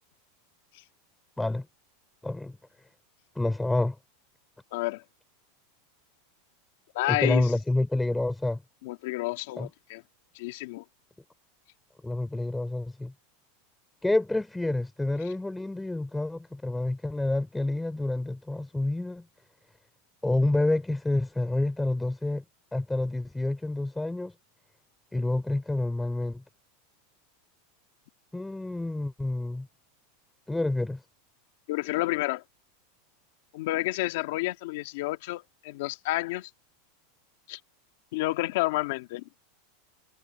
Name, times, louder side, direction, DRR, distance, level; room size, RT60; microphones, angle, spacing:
voice 1, 2.2-2.6 3.4-4.0 7.1-8.6 9.6-9.7 12.0-13.1 14.0-19.3 20.2-22.4 22.7-24.3 25.1-26.4 28.3-29.7 30.5-31.0, left 2 dB, 5° left, 3.7 m, -28 dB
voice 2, 4.7-5.0 6.9-7.5 8.8-10.0 10.3-10.8 31.7-32.4 33.5-36.5 37.5-37.6 38.1-39.3, left 19 dB, 60° left, 2.2 m, -30 dB
supercardioid pair, 165°, 0 cm